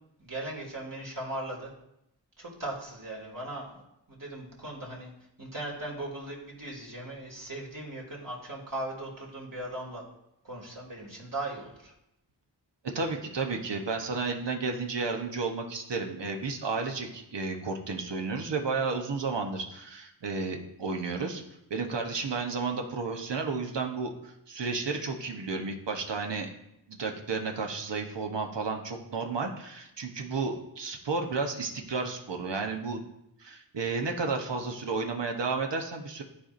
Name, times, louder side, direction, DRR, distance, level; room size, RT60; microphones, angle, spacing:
voice 1, 0.2-1.7 2.4-3.8 4.1-5.1 5.4-10.0 10.4-11.9, right 1 dB, 45° right, -3 dB, 2.5 m, -38 dB
voice 2, 12.8-21.4 21.7-26.5 26.9-33.1 33.4-36.2, right 4 dB, 65° right, 4 dB, 1.1 m, -32 dB
12.5 x 4.3 x 2.6 m, 0.84 s
cardioid pair, 45°, 46 cm